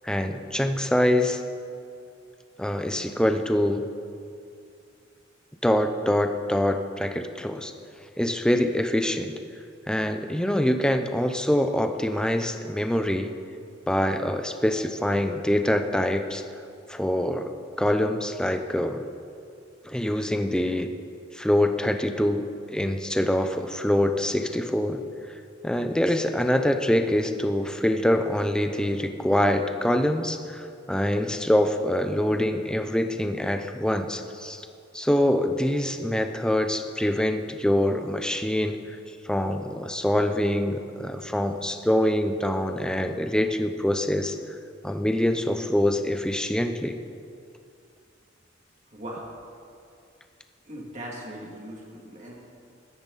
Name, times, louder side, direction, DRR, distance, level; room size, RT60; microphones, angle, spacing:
voice 1, 0.0-1.4 2.6-3.9 5.6-7.7 8.2-9.3 9.9-13.3 13.9-16.4 16.9-17.5 17.8-19.0 19.8-20.9 21.3-25.0 25.6-34.7 34.9-39.0 39.2-44.4 44.8-47.0, left 1 dB, 5° left, 6 dB, 0.6 m, -25 dB
voice 2, 48.9-49.3 50.6-52.3, right 1 dB, 40° right, -3 dB, 2.5 m, -39 dB
16.0 x 13.0 x 4.1 m, 2.4 s
head